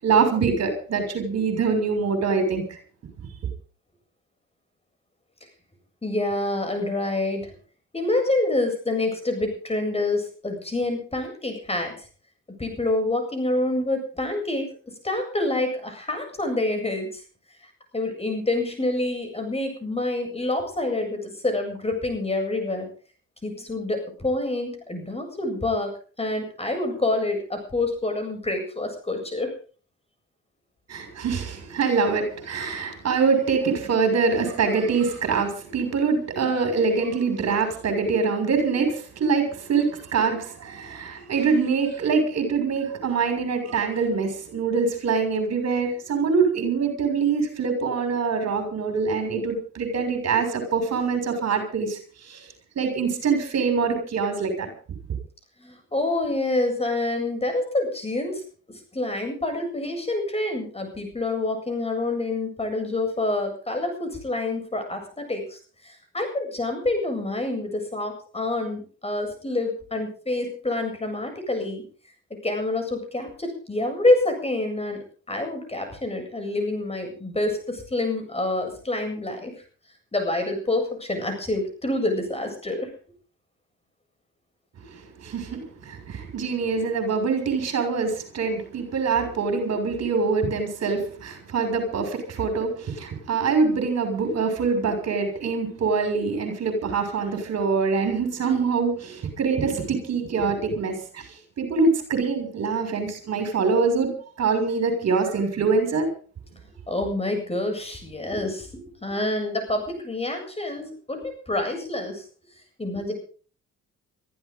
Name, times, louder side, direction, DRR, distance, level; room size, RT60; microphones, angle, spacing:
voice 1, 0.0-2.6 3.2-3.3 30.9-38.9 39.2-52.5 52.7-54.7 84.9-101.3 101.6-106.1, right 5 dB, 60° right, 6 dB, 6.4 m, -24 dB
voice 2, 6.0-7.5 7.9-11.9 12.6-14.7 15.0-17.2 17.9-22.9 23.4-25.9 26.2-29.5 36.4-36.5 38.7-38.8 55.6-71.8 72.3-79.5 80.1-82.9 106.9-112.2 112.8-113.1, left 2 dB, 20° left, 5 dB, 7.9 m, -27 dB
24.0 x 15.0 x 3.9 m, 0.40 s
cardioid pair, 90°, 30 cm